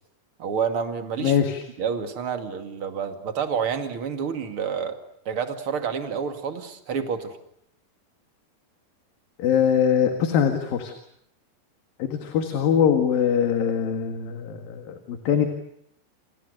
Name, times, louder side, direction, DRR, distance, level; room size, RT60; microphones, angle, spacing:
voice 1, 0.4-1.4 1.8-5.0 5.3-7.3, right 6 dB, 40° right, 6 dB, 2.7 m, -28 dB
voice 2, 1.2-1.6 9.4-10.9 12.0-15.5, left 8 dB, 70° left, 6 dB, 3.7 m, -22 dB
29.5 x 26.0 x 6.7 m, 0.73 s
omnidirectional pair, 4.4 m